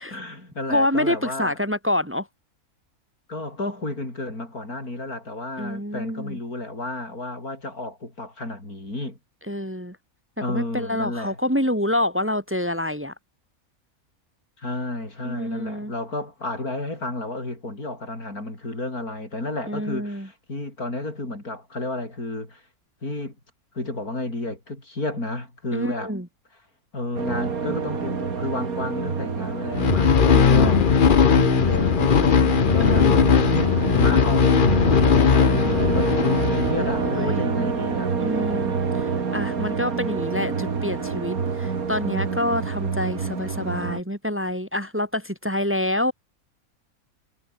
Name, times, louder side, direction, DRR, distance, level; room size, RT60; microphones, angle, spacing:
voice 1, 0.1-1.6 3.3-9.2 10.4-11.4 14.6-22.6 23.0-23.3 23.7-26.1 26.9-30.8 31.3-33.1 33.5-38.1, left 2 dB, 85° left, 7.5 m, -32 dB
voice 2, 0.7-2.3 5.6-6.4 9.5-10.0 10.5-13.1 15.2-15.9 19.7-20.3 25.7-26.3 30.3-30.9 32.8-33.3 36.8-37.4 38.2-46.1, left 1 dB, 10° right, 2.1 m, -27 dB
sound 1, 27.1-44.0, right 5 dB, 75° right, 2.5 m, -27 dB
sound 2, 29.7-37.2, left 6 dB, 40° left, 1.0 m, -18 dB
omnidirectional pair, 1.5 m